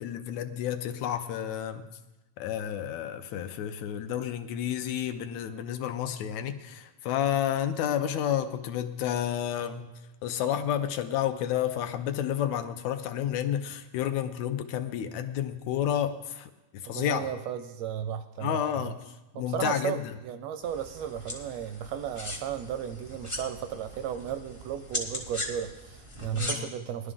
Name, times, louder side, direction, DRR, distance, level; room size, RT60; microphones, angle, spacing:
voice 1, 0.0-1.8 2.4-9.9 10.2-17.3 18.4-19.0 19.4-20.1 26.3-26.7, left 10 dB, 80° left, 8 dB, 2.0 m, -30 dB
voice 2, 16.9-18.6 19.3-27.1, right 9 dB, 80° right, 9 dB, 1.6 m, -35 dB
sound 1, 20.6-26.5, left 1 dB, 35° left, 0.5 m, -39 dB
19.0 x 11.0 x 3.7 m, 1.0 s
omnidirectional pair, 3.4 m